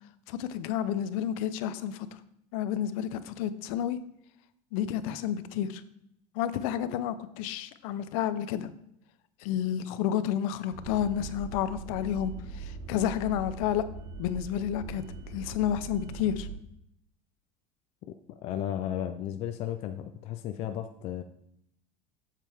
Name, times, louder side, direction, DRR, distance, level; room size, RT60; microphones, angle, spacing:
voice 1, 0.3-2.1 2.5-4.0 4.7-5.8 6.3-8.7 9.4-13.8 14.2-16.5, left 10 dB, 75° left, 13 dB, 0.6 m, -30 dB
sound 1, 10.7-16.6, right 4 dB, 85° right, 1.2 m, -41 dB
voice 2, 18.4-21.2, left 10 dB, 35° left, 7 dB, 0.4 m, -34 dB
7.5 x 7.4 x 3.5 m, 0.75 s
cardioid pair, 170°, 18 cm